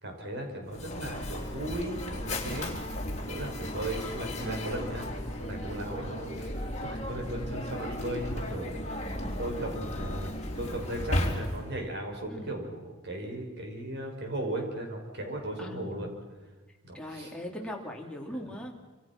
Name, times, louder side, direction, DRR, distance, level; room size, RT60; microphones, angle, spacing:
voice 1, 0.0-2.8 3.2-9.1 9.4-10.3 10.6-16.1 16.9-17.3, right 1 dB, 55° right, 2 dB, 5.7 m, -37 dB
Mechanisms, 0.7-11.8, left 1 dB, 35° left, 3.9 m, -35 dB
voice 2, 9.0-9.4 12.3-12.6 15.6-16.1 16.9-18.7, left 1 dB, 5° left, 0 dB, 3.2 m, -41 dB
27.0 x 26.5 x 6.1 m, 1.2 s
head